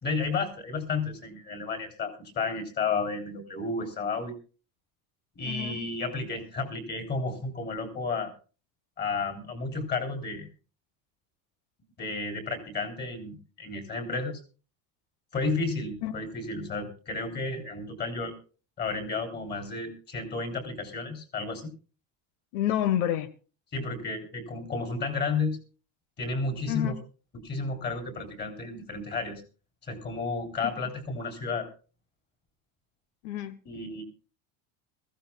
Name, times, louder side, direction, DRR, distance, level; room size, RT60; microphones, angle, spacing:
voice 1, 0.0-4.3 5.3-8.3 9.0-10.5 12.0-14.4 15.3-18.3 18.8-21.7 23.7-25.6 26.2-26.9 27.3-29.4 29.9-31.7 33.6-34.0, left 4 dB, 25° left, 3.3 m, -32 dB
voice 2, 5.4-5.8 16.0-16.1 22.5-23.3 26.7-26.9 30.6-30.7 33.2-33.6, left 11 dB, 85° left, 1.3 m, -28 dB
22.0 x 15.0 x 2.3 m
cardioid pair, 170°, 39 cm